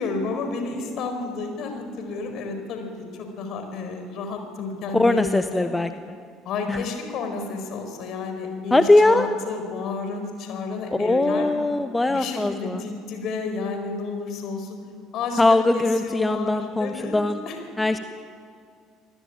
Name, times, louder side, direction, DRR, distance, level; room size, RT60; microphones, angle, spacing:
voice 1, 0.0-2.9 3.1-5.7 6.4-11.5 12.1-14.8 15.1-17.2 17.4-17.6, left 4 dB, 50° left, 5 dB, 4.8 m, -31 dB
voice 2, 4.9-5.9 6.7-6.8 8.7-9.3 11.0-12.8 15.4-17.4 17.8-18.0, left 2 dB, 10° left, 9 dB, 1.1 m, -20 dB
26.0 x 18.5 x 8.9 m, 2.1 s
figure-of-eight pair, 60°, 0 cm